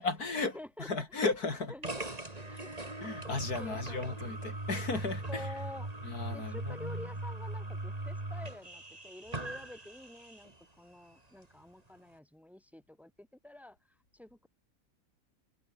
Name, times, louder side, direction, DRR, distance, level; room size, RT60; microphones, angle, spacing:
voice 1, 0.0-1.7 3.0-5.5 6.0-7.1, left 3 dB, 90° left, 4.3 m, -35 dB
voice 2, 0.5-0.9 1.7-3.3 3.6-4.2 5.3-5.9 6.3-13.8 14.1-14.5, left 1 dB, ahead, 2.7 m, -49 dB
sound 1, 1.8-10.6, right 2 dB, 25° right, 3.1 m, -40 dB
omnidirectional pair, 1.6 m